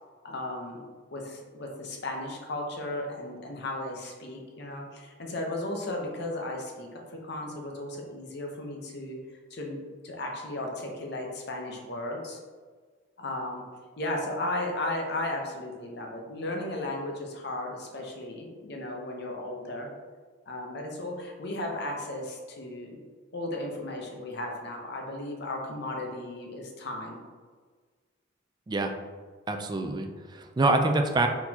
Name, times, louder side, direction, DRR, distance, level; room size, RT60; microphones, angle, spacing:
voice 1, 0.2-0.8 1.1-9.2 9.5-9.8 10.0-12.4 13.2-13.6 14.0-19.9 20.5-23.0 23.3-27.2, left 1 dB, 55° left, 1 dB, 0.8 m, -35 dB
voice 2, 29.5-31.3, right 2 dB, 20° right, 4 dB, 0.3 m, -26 dB
4.3 x 4.1 x 2.8 m, 1.5 s
head